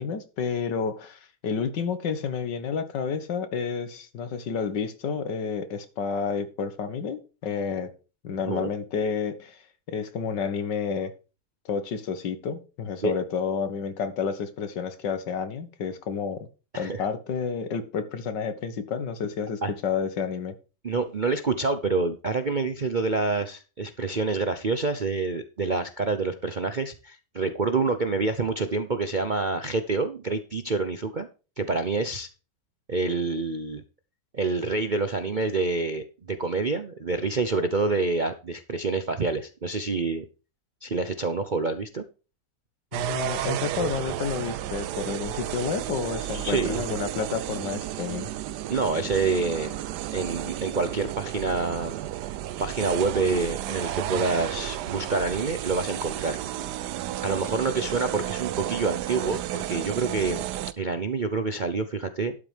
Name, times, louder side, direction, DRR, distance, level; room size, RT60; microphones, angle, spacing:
voice 1, 0.0-7.9 8.2-9.6 9.9-11.1 11.7-16.5 16.8-20.6 42.9-48.3, left 6 dB, 80° left, 11 dB, 2.0 m, -30 dB
voice 2, 20.8-31.3 31.6-32.3 32.9-33.8 34.3-40.2 40.8-42.0 46.3-46.8 48.7-49.7 50.1-52.0 52.6-56.4 57.2-60.5 60.8-62.4, right 3 dB, 40° right, 8 dB, 0.6 m, -27 dB
sound 1, 42.9-60.7, right 13 dB, 75° right, 1.2 m, -32 dB
12.0 x 8.7 x 3.4 m, 0.33 s
omnidirectional pair, 1.9 m